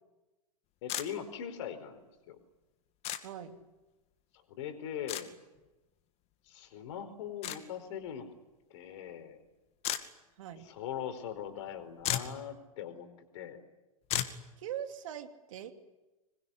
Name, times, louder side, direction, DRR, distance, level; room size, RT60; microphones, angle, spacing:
voice 1, 0.8-2.4 4.5-5.3 6.5-8.3 8.7-9.4 10.6-13.1 13.3-13.6, left 9 dB, 55° left, 9 dB, 4.6 m, -41 dB
sound 1, 0.9-1.1 3.0-3.2 5.1-5.2 7.4-7.6 9.8-10.0 11.7-11.8 12.0-12.4 14.1-14.4, left 12 dB, 35° left, 2.3 m, -33 dB
voice 2, 3.2-3.6 10.4-10.6 14.6-15.7, right 10 dB, 60° right, 6 dB, 3.0 m, -41 dB
26.0 x 22.0 x 10.0 m, 1.1 s
figure-of-eight pair, 105°, 19 cm